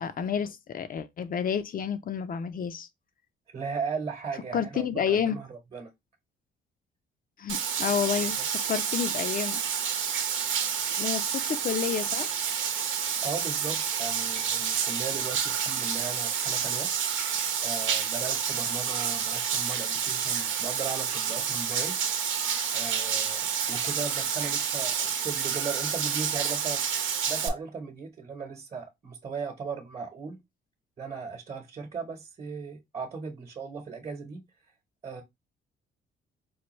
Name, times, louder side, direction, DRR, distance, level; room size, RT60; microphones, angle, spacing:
voice 1, 0.0-2.9 4.5-5.4 7.4-9.6 11.0-12.4, left 8 dB, 45° left, 0.6 m, -30 dB
voice 2, 3.5-5.9 8.4-8.5 13.2-16.9 17.6-22.0 22.7-26.8 27.3-30.4 31.0-34.4 35.0-35.2, right 5 dB, 35° right, 1.0 m, -37 dB
Bathtub (filling or washing), 7.5-27.5, right 7 dB, 75° right, 0.8 m, -29 dB
4.6 x 2.3 x 3.0 m
cardioid pair, 90°, 20 cm